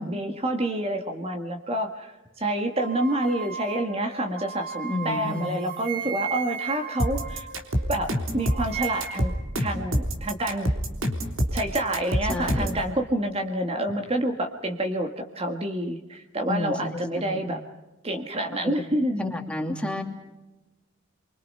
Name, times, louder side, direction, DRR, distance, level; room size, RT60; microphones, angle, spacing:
voice 1, 0.0-7.5 7.9-9.3 9.6-10.7 11.5-17.6 18.0-19.2, right 1 dB, 30° right, 4 dB, 1.8 m, -28 dB
sound 1, 2.8-8.1 8.4-9.4, right 8 dB, 45° right, 1.7 m, -36 dB
voice 2, 4.9-5.5 12.3-12.7 16.4-17.4 18.6-18.7 19.2-20.0, left 2 dB, 5° left, 2 dB, 2.8 m, -30 dB
sound 2, 7.0-12.8, equal, 75° right, 3.6 m, -26 dB
29.5 x 24.0 x 5.6 m, 1.0 s
head